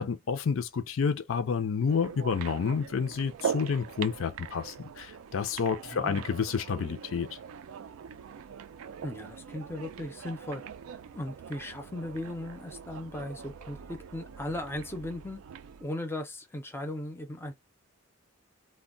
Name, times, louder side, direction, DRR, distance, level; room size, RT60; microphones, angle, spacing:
voice 1, 0.0-7.3, left 6 dB, 65° left, 0.4 m, -29 dB
sound 1, 1.9-15.8, right 7 dB, 75° right, 0.3 m, -42 dB
voice 2, 5.9-6.2 9.0-10.6 11.1-15.4 15.8-17.5, left 1 dB, 10° left, 0.5 m, -37 dB
2.2 x 2.1 x 3.7 m
head